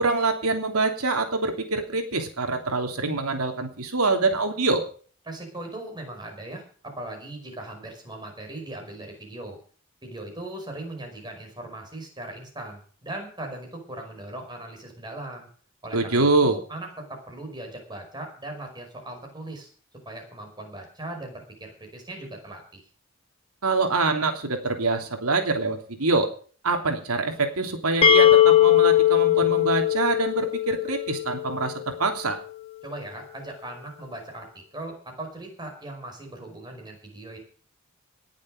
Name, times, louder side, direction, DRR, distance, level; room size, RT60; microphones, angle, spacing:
voice 1, 0.0-4.8 15.9-16.6 23.6-26.3 26.6-32.4, right 3 dB, 90° right, 5 dB, 3.1 m, -25 dB
voice 2, 5.3-9.6 10.0-15.5 15.8-19.7 20.1-22.8 32.8-34.5 34.7-37.4, right 1 dB, 20° right, 3 dB, 5.3 m, -39 dB
sound 1, 28.0-31.7, left 11 dB, 25° left, 2.2 m, -19 dB
19.0 x 7.4 x 6.4 m, 0.43 s
head